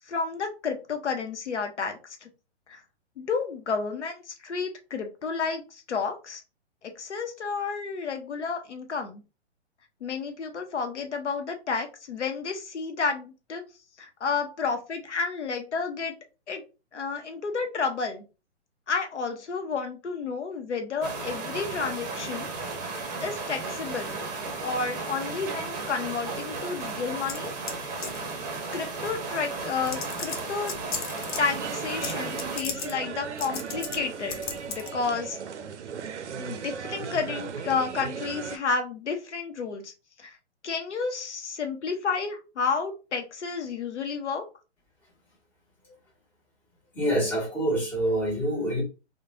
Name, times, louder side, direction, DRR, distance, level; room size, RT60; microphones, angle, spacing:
voice 1, 0.1-2.3 2.7-2.8 3.2-6.4 7.0-9.2 10.0-13.6 14.0-16.2 16.5-16.6 16.9-18.2 18.9-22.5 23.2-24.2 24.6-27.5 28.7-30.7 31.4-34.4 34.7-35.4 36.4-39.9 40.2-40.4 40.6-44.4, left 5 dB, 75° left, 0.7 m, -31 dB
sound 1, 21.0-32.6, right 3 dB, 35° right, 0.7 m, -34 dB
sound 2, 27.3-27.8 28.0-28.3 29.3-29.4 29.8-31.4 32.0-32.1 32.4-32.9 33.4-34.0 34.3-34.9, left 6 dB, 45° left, 0.6 m, -34 dB
sound 3, 31.3-38.6, right 6 dB, 80° right, 0.5 m, -37 dB
voice 2, 47.0-48.8, right 1 dB, 5° left, 0.7 m, -26 dB
3.1 x 2.1 x 2.4 m
figure-of-eight pair, 125°, 35 cm